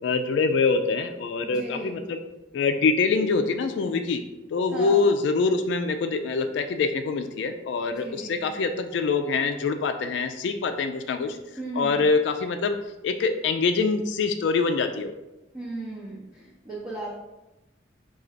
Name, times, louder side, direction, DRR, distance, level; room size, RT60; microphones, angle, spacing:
voice 1, 0.0-2.2 2.5-4.2 4.5-11.4 11.8-12.8 13.0-15.1, left 4 dB, 70° left, 6 dB, 0.3 m, -24 dB
voice 2, 1.4-2.0 4.7-5.0 8.0-8.7 11.6-12.0 15.5-17.2, right 2 dB, 20° right, -7 dB, 0.7 m, -36 dB
3.8 x 2.4 x 4.4 m, 0.98 s
head